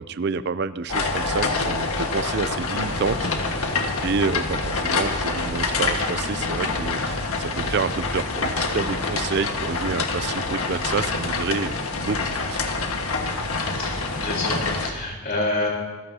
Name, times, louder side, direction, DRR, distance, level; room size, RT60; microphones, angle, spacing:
voice 1, 0.0-12.6, right 4 dB, 50° right, 14 dB, 0.4 m, -29 dB
sound 1, 0.9-14.9, left 3 dB, 75° left, 1.6 m, -26 dB
sound 2, 2.8-9.3, equal, 15° left, 1.3 m, -41 dB
voice 2, 14.2-15.7, left 2 dB, 45° left, -2 dB, 4.1 m, -28 dB
25.5 x 15.5 x 2.8 m, 1.4 s
head